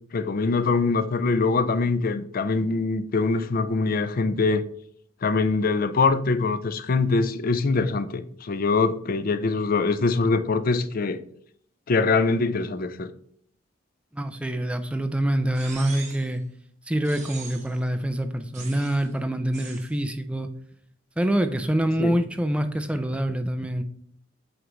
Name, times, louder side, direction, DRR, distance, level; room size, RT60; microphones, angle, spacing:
voice 1, 0.1-4.6 5.2-11.2 11.9-13.1 22.0-22.2, left 4 dB, 50° left, 0.5 m, -23 dB
voice 2, 14.1-16.4 16.9-20.5 21.2-23.8, right 1 dB, 5° right, 0.5 m, -25 dB
sound 1, 15.5-16.3 17.0-17.8 18.5-19.1 19.5-19.9, right 4 dB, 40° right, 1.3 m, -41 dB
7.9 x 3.2 x 3.9 m
head